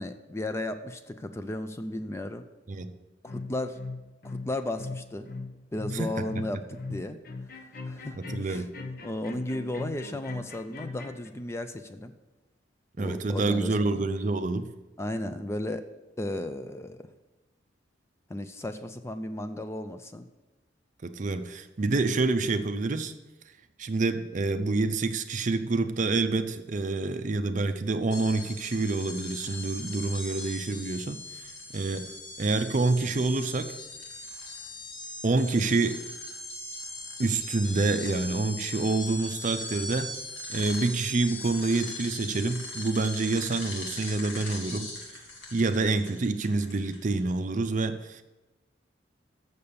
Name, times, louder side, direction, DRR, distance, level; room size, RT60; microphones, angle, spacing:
voice 1, 0.0-2.4 3.2-3.8 4.2-5.3 5.7-7.2 7.8-8.6 9.0-12.1 13.0-14.0 15.0-15.8 16.2-17.1 18.3-20.2, left 1 dB, 15° left, 8 dB, 0.3 m, -34 dB
sound 1, 3.3-11.3, left 3 dB, 50° left, 0.8 m, -39 dB
voice 2, 5.9-6.2 8.1-8.7 13.0-14.7 21.0-23.1 23.8-32.1 32.4-33.8 35.2-36.0 37.2-40.2 40.5-45.2 45.5-48.2, right 3 dB, 40° right, 10 dB, 0.5 m, -27 dB
sound 2, 28.1-47.2, left 2 dB, 75° left, 1.8 m, -40 dB
7.0 x 6.7 x 6.7 m, 1.1 s
head